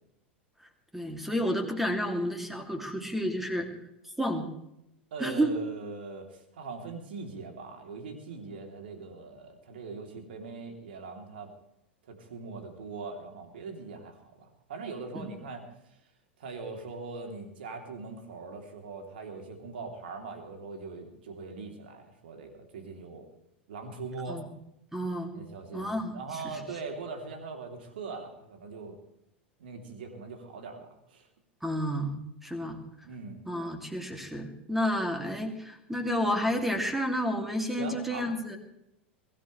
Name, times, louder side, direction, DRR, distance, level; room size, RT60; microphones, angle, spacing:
voice 1, 0.9-3.7 4.2-4.5 5.2-5.5 15.1-15.3 24.3-24.5 24.9-25.3 25.7-26.2 26.5-26.6 31.6-32.8 33.5-38.6, equal, 5° right, 4 dB, 2.9 m, -30 dB
voice 2, 5.1-11.5 12.1-15.6 16.4-23.3 23.7-24.4 25.3-29.0 29.6-31.3 33.1-33.4 37.8-38.3, right 4 dB, 60° right, 3 dB, 3.4 m, -41 dB
23.0 x 16.0 x 3.4 m, 0.81 s
figure-of-eight pair, 85°, 6 cm